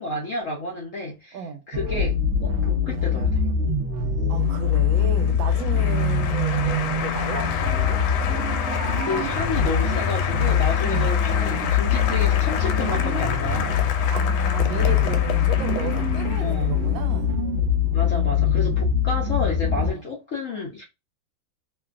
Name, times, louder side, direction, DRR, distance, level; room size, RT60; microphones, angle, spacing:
voice 1, 0.0-3.4 9.0-13.9 16.4-16.8 17.9-20.8, left 3 dB, 70° left, 0.7 m, -31 dB
sound 1, 1.7-19.9, left 6 dB, 65° right, 0.8 m, -23 dB
voice 2, 4.3-8.0 10.8-11.1 14.1-17.3 19.7-20.0, right 5 dB, 80° right, 1.4 m, -33 dB
Applause, 4.4-16.9, left 7 dB, 90° left, 1.4 m, -31 dB
3.2 x 2.2 x 2.3 m
omnidirectional pair, 2.1 m